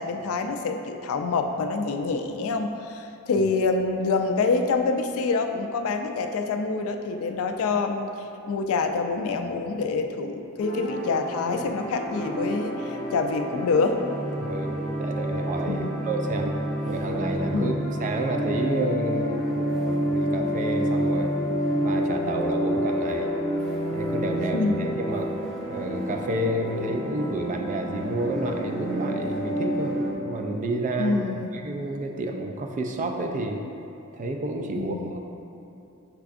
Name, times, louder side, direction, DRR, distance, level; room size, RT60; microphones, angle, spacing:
voice 1, 0.0-8.2 8.5-14.0 15.7-16.0 17.5-17.8 24.5-24.9 31.0-31.6 34.7-35.2, left 4 dB, 65° left, 6 dB, 0.3 m, -26 dB
sound 1, 10.6-30.1, equal, ahead, 0.8 m, -29 dB
voice 2, 14.4-16.6 16.8-21.3 21.8-23.3 23.9-25.3 25.7-33.6 34.1-35.2, right 1 dB, 35° right, 3 dB, 0.3 m, -30 dB
5.8 x 3.4 x 2.4 m, 2.9 s
head